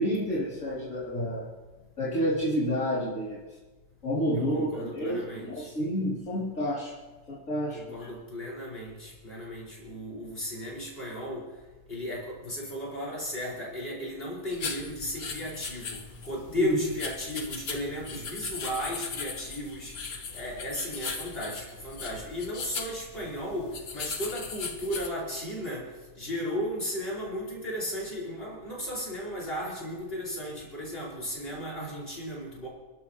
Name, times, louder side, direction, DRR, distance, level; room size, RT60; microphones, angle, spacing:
voice 1, 0.0-1.4 2.0-3.4 4.0-6.9 7.3-8.1 16.5-16.7, equal, 65° left, -9 dB, 3.4 m, -29 dB
voice 2, 4.3-5.7 7.7-11.5 11.9-16.0 16.2-19.9 20.3-25.9 26.2-32.7, equal, 40° left, -4 dB, 5.3 m, -35 dB
sound 1, 14.5-25.1, left 5 dB, 85° left, 1.8 m, -39 dB
29.0 x 12.0 x 3.0 m, 1.2 s
omnidirectional pair, 1.5 m